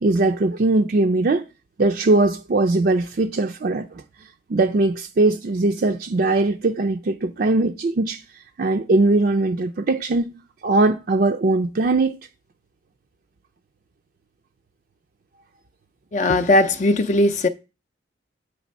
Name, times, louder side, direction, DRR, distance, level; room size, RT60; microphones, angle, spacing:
voice 1, 0.0-1.4 1.8-3.9 4.5-8.2 8.6-10.4 10.6-12.2, right 2 dB, 50° right, 0.4 m, -20 dB
voice 2, 16.1-17.5, left 2 dB, 40° left, 0.4 m, -18 dB
8.4 x 3.3 x 5.3 m
head